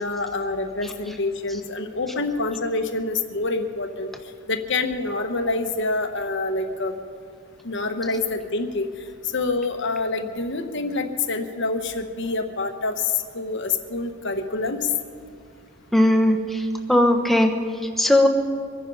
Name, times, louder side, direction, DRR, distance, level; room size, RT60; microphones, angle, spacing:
voice 1, 0.0-4.1 4.5-6.9 7.6-8.9 9.2-14.9, left 3 dB, 55° left, 7 dB, 1.1 m, -26 dB
voice 2, 15.9-17.5 18.0-18.3, left 1 dB, ahead, 3 dB, 1.0 m, -18 dB
24.0 x 10.0 x 5.4 m, 2.2 s
head